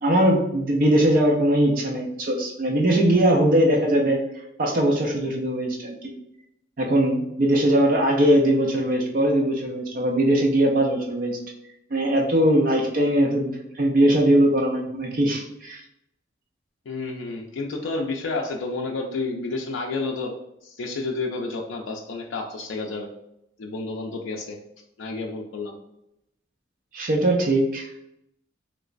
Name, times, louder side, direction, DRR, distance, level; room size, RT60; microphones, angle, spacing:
voice 1, 0.0-4.2 4.6-5.9 6.8-11.4 11.9-15.8 26.9-27.9, right 1 dB, 45° right, 0 dB, 0.5 m, -20 dB
voice 2, 16.9-20.3 20.6-23.1 23.6-24.6 25.0-25.7, left 3 dB, 85° left, 0 dB, 0.4 m, -30 dB
3.1 x 2.9 x 2.5 m, 0.83 s
head